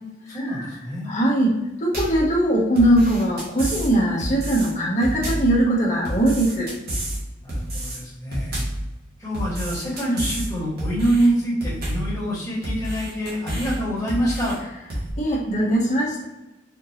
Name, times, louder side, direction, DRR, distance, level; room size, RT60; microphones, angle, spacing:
voice 1, 0.3-1.1 7.4-8.7 9.2-14.5, right 1 dB, 15° left, -8 dB, 1.5 m, -25 dB
voice 2, 1.1-6.7 15.2-16.2, right 1 dB, 40° left, -4 dB, 1.0 m, -20 dB
sound 1, 1.9-2.2 2.8-3.9 4.2-4.7 5.0-5.5 6.0-7.2 7.5-8.0 8.3-8.8 9.3-10.5 10.8-11.3 11.6-12.1 12.6-13.8 14.1-14.6 14.9-15.1, right 1 dB, 50° right, 1.5 m, -29 dB
4.4 x 2.7 x 2.8 m, 1.0 s
head